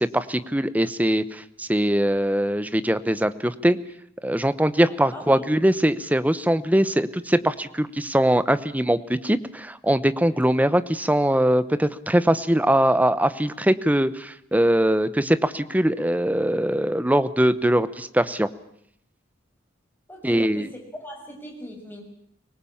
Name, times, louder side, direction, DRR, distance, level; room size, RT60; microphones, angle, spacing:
voice 1, 0.0-3.8 4.2-18.5 20.2-20.7, right 1 dB, 10° right, 14 dB, 0.9 m, -22 dB
voice 2, 5.1-5.5 20.1-22.0, equal, 10° left, 1 dB, 6.2 m, -39 dB
24.5 x 19.5 x 8.7 m, 0.69 s
head